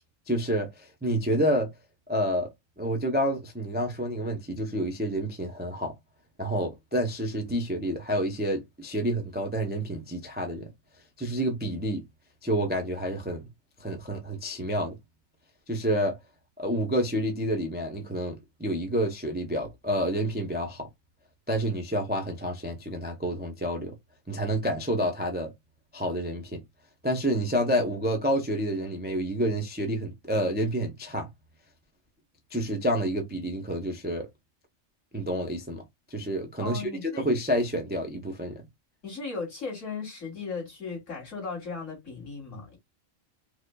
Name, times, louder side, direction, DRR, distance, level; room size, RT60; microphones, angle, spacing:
voice 1, 0.3-1.7 2.1-2.5 2.8-5.9 6.4-10.7 11.2-12.0 12.4-13.4 13.8-15.0 15.7-16.2 16.6-20.9 21.5-24.0 24.3-25.5 25.9-26.6 27.0-31.3 32.5-34.3 35.1-35.8 36.1-38.6, equal, 15° right, 0.3 m, -29 dB
voice 2, 36.6-37.3 39.0-42.8, left 4 dB, 70° left, 2.3 m, -36 dB
4.8 x 2.1 x 2.2 m
omnidirectional pair, 1.3 m